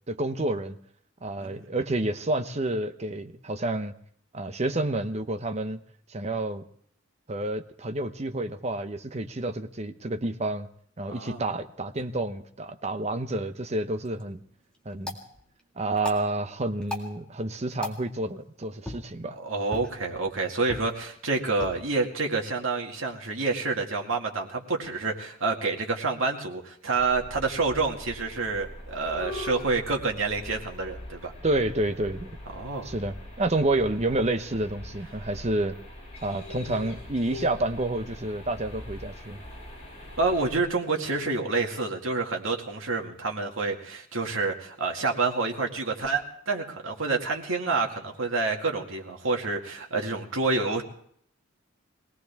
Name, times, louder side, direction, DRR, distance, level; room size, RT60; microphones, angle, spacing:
voice 1, 0.1-0.8 1.2-3.9 4.3-5.8 6.1-6.6 7.3-10.7 11.0-14.4 14.8-15.2 15.8-19.4 31.4-32.4 32.8-35.8 36.2-39.4, right 2 dB, 35° right, 9 dB, 0.8 m, -29 dB
voice 2, 11.1-11.4 19.4-31.3 32.5-32.9 40.2-50.8, right 3 dB, 80° right, 1 dB, 2.1 m, -28 dB
sound 1, 14.0-23.9, left 2 dB, 5° left, 2.0 m, -43 dB
sound 2, 26.9-40.6, left 1 dB, 35° left, 5.7 m, -42 dB
22.5 x 18.0 x 3.5 m, 0.63 s
head